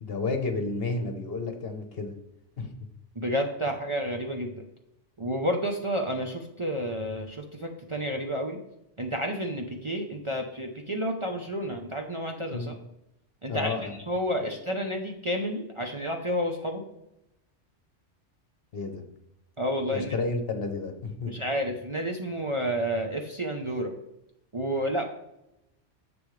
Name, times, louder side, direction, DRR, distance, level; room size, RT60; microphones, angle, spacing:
voice 1, 0.0-2.1 2.6-2.7 12.5-12.7 13.5-13.9 14.4-14.5 18.7-19.0 19.9-21.4, left 3 dB, 55° left, 6 dB, 1.2 m, -31 dB
voice 2, 3.2-4.6 5.2-8.6 9.0-12.8 13.4-16.8 19.6-20.1 21.3-23.9 24.5-25.1, equal, 30° right, 2 dB, 0.7 m, -30 dB
10.5 x 7.0 x 3.2 m, 0.86 s
omnidirectional pair, 1.2 m